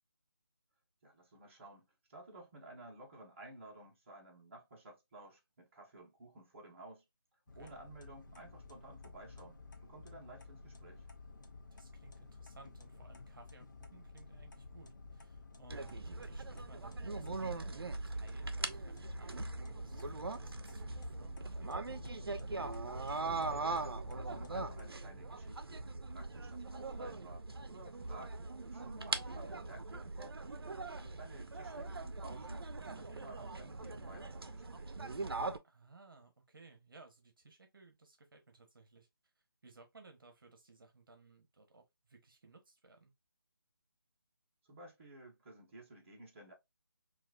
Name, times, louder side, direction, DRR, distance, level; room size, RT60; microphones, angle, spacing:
voice 1, 1.0-7.0 7.5-11.0 23.1-28.3 28.6-30.5 30.9-35.0 44.6-46.5, right 2 dB, 35° right, 1.0 m, -55 dB
sound 1, 7.5-24.9, left 3 dB, 50° left, 0.8 m, -53 dB
voice 2, 11.7-21.7 28.0-28.3 35.6-39.1 39.6-43.1, right 3 dB, 65° right, 1.0 m, -60 dB
sound 2, 15.7-35.6, right 3 dB, 90° right, 0.6 m, -41 dB
4.1 x 2.5 x 2.3 m
figure-of-eight pair, 165°, 12 cm